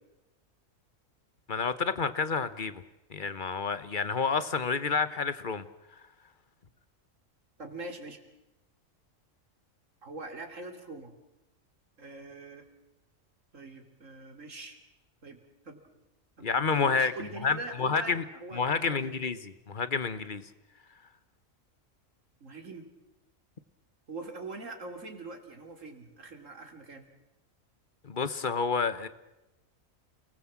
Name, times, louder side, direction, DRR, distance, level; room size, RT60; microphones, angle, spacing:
voice 1, 1.5-2.8 3.1-5.7 16.4-17.1 17.4-18.2 18.5-20.5 28.0-29.1, left 5 dB, 40° left, 14 dB, 1.3 m, -29 dB
voice 2, 7.6-8.2 10.0-11.1 12.0-12.7 13.5-14.8 15.2-15.4 15.6-15.8 16.4-19.1 22.4-22.9 24.1-27.1, right 3 dB, 70° right, 6 dB, 3.4 m, -43 dB
28.5 x 19.5 x 7.5 m, 0.96 s
omnidirectional pair, 1.4 m